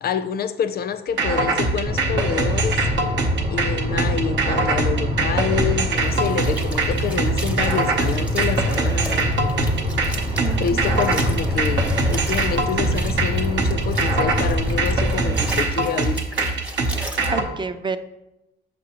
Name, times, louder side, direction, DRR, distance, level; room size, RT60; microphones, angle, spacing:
voice 1, 0.0-2.8 3.5-9.3 10.3-16.2, left 7 dB, 50° left, 0.4 m, -27 dB
sound 1, 1.2-17.4, right 3 dB, 65° right, 0.8 m, -23 dB
sound 2, 1.9-15.6, equal, 45° right, 1.0 m, -25 dB
sound 3, 5.9-17.3, equal, 5° right, 0.9 m, -38 dB
voice 2, 10.4-11.0 17.3-18.0, right 4 dB, 25° right, 0.4 m, -29 dB
6.7 x 5.0 x 2.9 m
cardioid pair, 90°, 20 cm